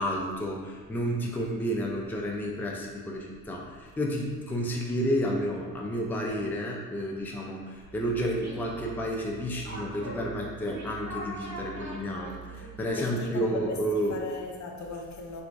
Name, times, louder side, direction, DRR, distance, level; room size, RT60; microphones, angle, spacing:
voice 1, 0.0-14.2, equal, 5° left, -1 dB, 0.4 m, -31 dB
sound 1, 7.8-12.9, right 2 dB, 55° right, 1.1 m, -42 dB
voice 2, 13.0-15.4, left 4 dB, 55° left, 2 dB, 0.5 m, -37 dB
3.0 x 2.4 x 3.4 m, 1.5 s
cardioid pair, 85°, 34 cm